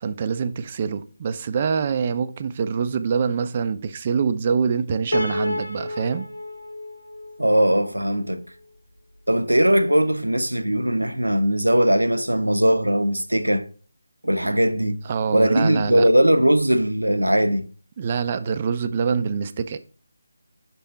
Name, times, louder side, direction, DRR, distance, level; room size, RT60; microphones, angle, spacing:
voice 1, 0.0-6.3 14.4-14.6 15.1-16.1 18.0-19.8, right 6 dB, 30° right, 0.4 m, -25 dB
Piano, 5.1-8.3, left 1 dB, 80° left, 0.7 m, -30 dB
voice 2, 7.4-8.4 9.3-13.7 14.2-15.0 15.3-17.6, right 1 dB, 90° right, 0.6 m, -19 dB
5.9 x 3.5 x 5.4 m
figure-of-eight pair, 155°, 0 cm